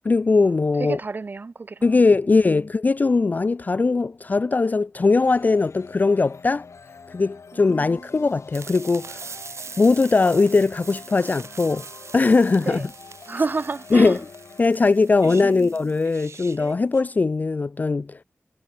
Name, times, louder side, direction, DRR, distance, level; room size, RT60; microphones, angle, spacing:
voice 1, 0.1-1.0 1.8-6.7 7.1-9.3 9.8-11.9 12.1-12.9 13.9-14.2 14.6-18.2, left 3 dB, 35° left, 0.3 m, -20 dB
voice 2, 0.8-1.9 7.5-7.6 7.9-8.0 12.6-12.9 13.3-14.2 15.2-15.7, right 4 dB, 40° right, 0.4 m, -30 dB
sound 1, 5.2-14.7, left 5 dB, 75° left, 6.5 m, -46 dB
sound 2, 8.5-17.0, right 5 dB, 70° right, 2.1 m, -42 dB
wide cardioid pair, 120°, 5 cm